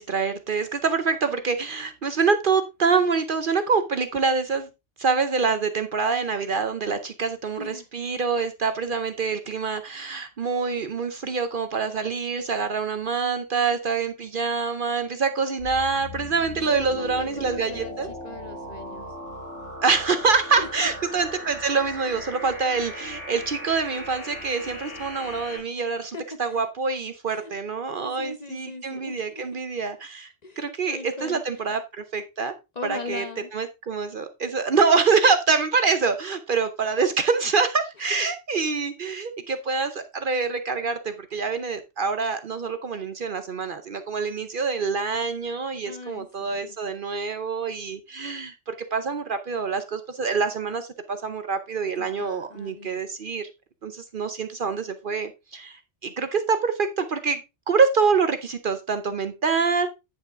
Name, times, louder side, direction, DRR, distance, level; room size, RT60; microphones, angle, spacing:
voice 1, 0.0-4.7 5.0-18.1 19.8-32.5 32.8-33.2 33.5-53.5 53.8-57.4 57.7-59.9, right 5 dB, 50° right, 0.8 m, -25 dB
voice 2, 7.6-7.9 16.7-19.1 20.6-20.7 26.1-26.2 26.5-26.6 27.3-27.5 27.9-29.4 30.4-31.8 32.7-33.5 38.1-38.3 45.9-46.8 52.0-52.9, left 2 dB, 35° left, 0.9 m, -39 dB
sound 1, 15.6-25.6, left 1 dB, 75° left, 3.8 m, -38 dB
9.2 x 5.7 x 3.5 m
omnidirectional pair, 1.2 m